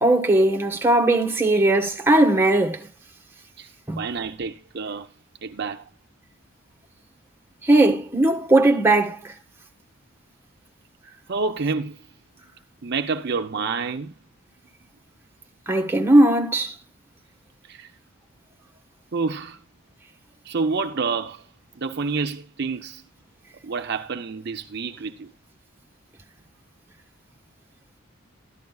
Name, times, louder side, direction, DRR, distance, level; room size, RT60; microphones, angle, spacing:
voice 1, 0.0-2.9 3.9-4.0 7.6-9.3 15.7-16.7, right 1 dB, 10° right, 1.2 m, -18 dB
voice 2, 4.0-5.1 5.4-5.9 11.3-12.0 12.8-14.1 17.7-17.9 19.1-19.6 20.4-21.5 21.7-23.0 23.6-25.3, right 4 dB, 55° right, 0.7 m, -28 dB
13.0 x 10.5 x 2.3 m
head